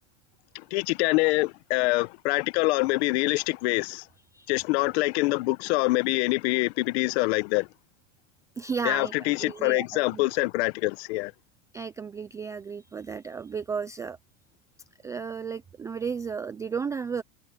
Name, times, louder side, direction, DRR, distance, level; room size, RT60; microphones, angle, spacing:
voice 1, 0.5-4.0 4.5-7.7 8.8-11.3, left 23 dB, 60° left, 1.1 m, -25 dB
voice 2, 8.6-9.1 9.4-9.9 10.1-10.2 11.7-14.2 15.0-17.2, right 5 dB, 10° right, 0.3 m, -33 dB
supercardioid pair, 140°, 36 cm